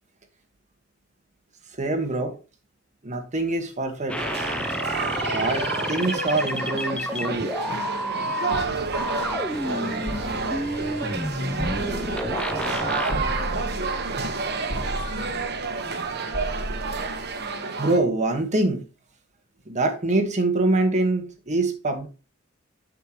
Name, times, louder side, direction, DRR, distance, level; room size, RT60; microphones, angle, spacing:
voice 1, 1.7-2.3 3.0-4.2 5.3-7.5 11.4-11.5 11.8-12.8 13.5-13.6 15.3-15.4 17.0-17.1 17.8-18.8 19.6-22.1, right 2 dB, 35° right, 1.5 m, -25 dB
sound 1, 4.1-8.6 8.9-13.2, left 1 dB, 5° left, 0.5 m, -30 dB
sound 2, 4.2-18.0, right 4 dB, 55° right, 1.2 m, -30 dB
sound 3, 8.5-17.8, equal, 50° left, 4.7 m, -36 dB
7.8 x 6.6 x 3.0 m
head